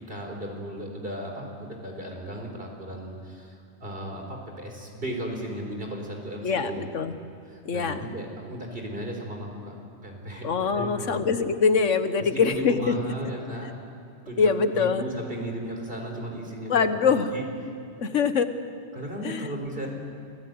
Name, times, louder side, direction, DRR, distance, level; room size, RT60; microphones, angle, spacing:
voice 1, 0.1-6.9 7.4-9.7 10.0-10.5 10.7-11.2 12.2-13.7 14.3-17.4 18.9-19.9, right 1 dB, 50° right, 1 dB, 4.4 m, -35 dB
voice 2, 6.4-7.2 7.6-8.1 10.4-12.9 14.4-15.0 16.7-17.3 18.0-18.5 19.2-19.4, left 5 dB, 90° left, 10 dB, 1.5 m, -23 dB
27.5 x 17.0 x 9.5 m, 2.4 s
omnidirectional pair, 1.2 m